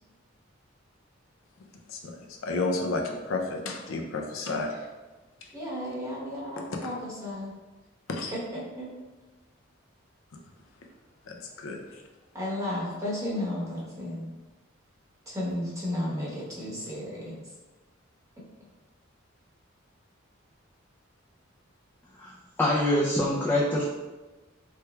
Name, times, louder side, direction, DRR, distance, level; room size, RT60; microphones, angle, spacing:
voice 1, 2.4-4.7 8.1-8.3 11.3-11.8, left 3 dB, 85° left, 2 dB, 0.5 m, -31 dB
voice 2, 5.5-7.6 8.3-8.9 12.3-14.3 15.3-17.4, left 1 dB, 15° right, -7 dB, 0.9 m, -33 dB
voice 3, 22.6-23.8, left 1 dB, 10° left, -7 dB, 0.4 m, -24 dB
3.2 x 3.1 x 2.2 m, 1.2 s
head